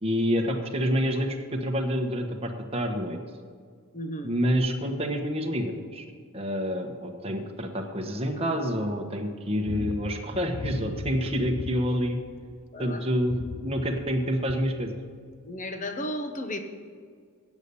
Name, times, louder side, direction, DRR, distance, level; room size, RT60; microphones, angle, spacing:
voice 1, 0.0-3.2 4.2-6.0 6.3-12.2 12.8-15.0, equal, 25° right, 3 dB, 1.1 m, -28 dB
voice 2, 3.9-4.3 12.7-13.0 15.4-16.6, equal, 35° left, 7 dB, 1.0 m, -34 dB
sound 1, 9.6-12.7 13.1-14.8 15.3-15.5, left 4 dB, 70° left, 0.6 m, -37 dB
8.3 x 8.1 x 6.9 m, 2.1 s
head